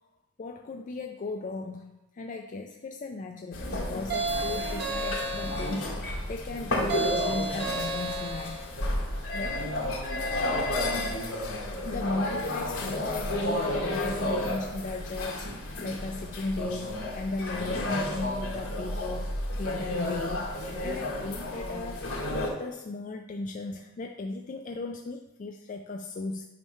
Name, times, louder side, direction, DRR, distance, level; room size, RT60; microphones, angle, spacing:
voice 1, 0.4-8.6 9.3-9.9 10.1-11.2 11.8-15.5 15.8-26.4, left 3 dB, 35° left, 3 dB, 0.3 m, -36 dB
sound 1, 3.5-22.5, left 1 dB, 85° left, 2.0 m, -32 dB
sound 2, 4.1-5.9 6.9-8.7, right 3 dB, 50° right, 1.2 m, -32 dB
8.7 x 3.1 x 5.5 m, 0.99 s
head